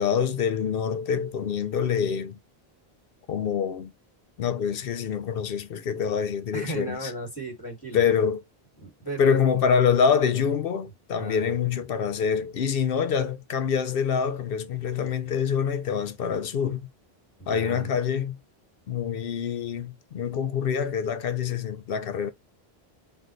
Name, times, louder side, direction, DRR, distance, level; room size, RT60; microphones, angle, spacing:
voice 1, 0.0-2.4 3.3-3.9 4.4-7.1 7.9-8.4 9.2-16.9 17.5-18.4 18.9-22.3, left 7 dB, 65° left, 0.7 m, -26 dB
voice 2, 6.5-8.0 8.8-9.4 11.1-11.5 17.4-17.9, right 2 dB, 20° left, 2.3 m, -35 dB
4.0 x 2.8 x 3.1 m
omnidirectional pair, 1.1 m